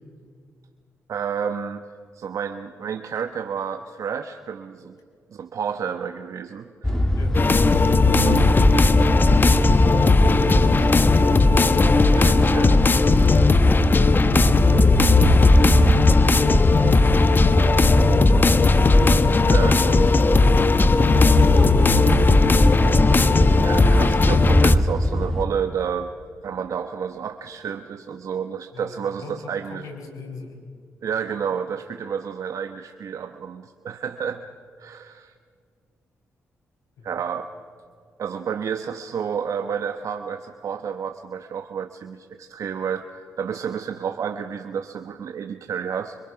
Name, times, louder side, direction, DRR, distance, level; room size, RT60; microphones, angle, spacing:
voice 1, 1.1-1.8 2.1-5.0 5.3-7.0 8.1-8.5 12.1-12.8 19.5-20.1 23.6-26.1 26.4-29.8 31.0-34.4 34.8-35.3 37.0-37.5 38.2-46.2, right 7 dB, 65° right, 7 dB, 1.0 m, -30 dB
sound 1, 6.8-25.5, left 1 dB, 10° left, 1.5 m, -22 dB
sound 2, 7.3-24.8, left 3 dB, 35° left, 1.1 m, -17 dB
voice 2, 10.2-11.5 24.9-25.1 28.7-30.6 37.0-37.1, left 4 dB, 75° left, 3 dB, 5.2 m, -37 dB
25.5 x 24.5 x 5.8 m, 2.2 s
cardioid pair, 65°, 6 cm